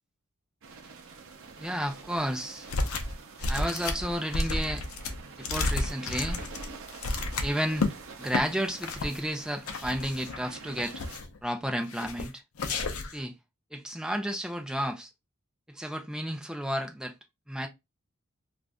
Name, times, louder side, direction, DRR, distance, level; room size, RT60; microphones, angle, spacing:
sound 1, 0.6-11.2, right 4 dB, 65° right, 0.7 m, -47 dB
voice 1, 1.6-2.7 3.5-4.9 5.4-6.4 7.4-11.0 11.4-12.4 13.1-13.3 13.7-15.1 15.7-17.1 17.5-17.7, equal, 5° right, 0.5 m, -32 dB
sound 2, 2.7-3.1 3.4-7.9 8.3-8.4 8.8-9.2 9.7-10.4 10.8-11.4 11.9-12.3 12.6-13.2, left 2 dB, 75° left, 0.6 m, -31 dB
2.5 x 2.5 x 3.3 m
head